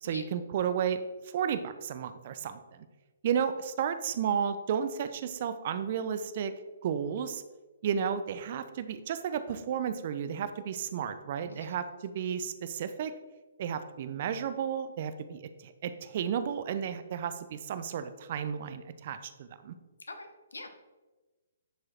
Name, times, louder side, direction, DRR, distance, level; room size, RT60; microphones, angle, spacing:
voice 1, 0.0-1.0 1.3-2.9 3.2-6.5 6.8-7.4 7.8-13.1 13.6-19.7, right 8 dB, 45° right, 11 dB, 0.6 m, -33 dB
voice 2, 20.0-20.7, left 3 dB, 75° left, 7 dB, 1.1 m, -44 dB
10.0 x 4.9 x 4.3 m, 1.2 s
figure-of-eight pair, 130°, 0 cm